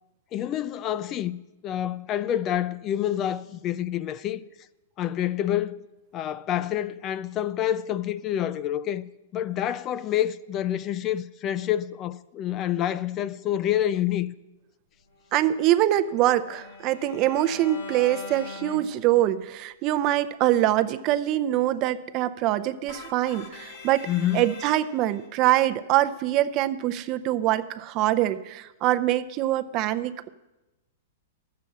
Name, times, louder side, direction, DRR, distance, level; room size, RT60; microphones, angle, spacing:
voice 1, 0.3-1.4 1.6-4.4 5.0-5.8 6.1-9.0 9.3-14.3 24.1-24.4, left 11 dB, 35° left, 0.4 m, -27 dB
Bowed string instrument, 15.3-19.5, left 4 dB, 85° left, 1.9 m, -42 dB
voice 2, 15.3-30.3, right 13 dB, 40° right, 0.6 m, -24 dB
sound 1, 22.9-25.3, left 3 dB, 50° left, 1.5 m, -44 dB
12.0 x 7.6 x 7.2 m
hypercardioid pair, 125°, 0 cm